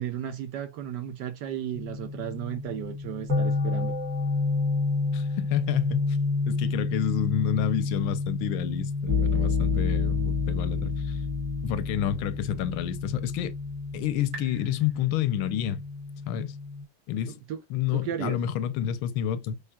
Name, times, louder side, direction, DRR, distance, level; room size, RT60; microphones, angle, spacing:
voice 1, 0.0-4.0 17.3-17.6 17.9-18.4, right 10 dB, 70° right, 1.0 m, -34 dB
sound 1, 1.7-16.8, left 4 dB, 50° right, 2.1 m, -29 dB
voice 2, 5.1-6.2 6.5-11.2 11.6-13.5 13.9-15.8 16.3-16.6 17.1-17.4 17.7-19.6, left 10 dB, 90° left, 1.5 m, -29 dB
5.5 x 3.3 x 2.2 m
omnidirectional pair, 2.2 m